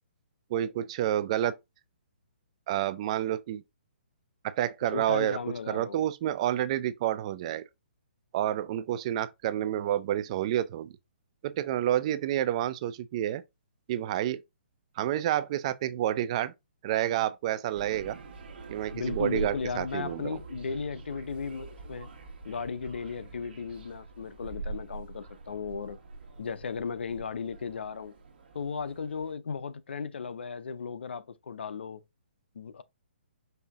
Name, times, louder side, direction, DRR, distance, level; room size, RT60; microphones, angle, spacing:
voice 1, 0.5-1.5 2.7-3.6 4.4-5.4 5.7-7.6 8.3-10.9 11.4-13.4 13.9-14.4 15.0-16.5 16.8-18.2 18.7-20.4, right 12 dB, 35° right, 0.4 m, -29 dB
voice 2, 4.9-6.0 18.9-22.1 22.4-26.0 26.4-28.1 28.5-32.0 32.5-32.8, left 5 dB, 75° left, 0.6 m, -36 dB
sound 1, 17.7-29.3, right 3 dB, 60° right, 1.5 m, -44 dB
5.5 x 2.7 x 3.5 m
hypercardioid pair, 155°, 6 cm